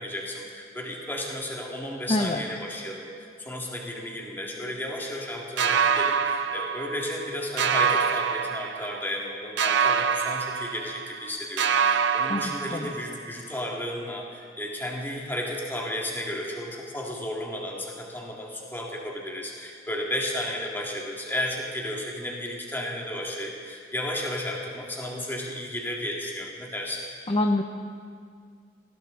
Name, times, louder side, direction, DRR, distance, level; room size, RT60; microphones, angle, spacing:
voice 1, 0.0-3.1 3.4-27.0, left 1 dB, 10° left, -2 dB, 2.0 m, -33 dB
voice 2, 2.1-2.4 12.3-12.9 27.3-27.6, left 2 dB, 30° left, 4 dB, 0.6 m, -25 dB
sound 1, 5.6-7.3 7.6-9.2 9.6-11.3 11.6-13.3, right 6 dB, 70° right, 0.5 m, -25 dB
19.5 x 14.5 x 3.8 m, 2.1 s
head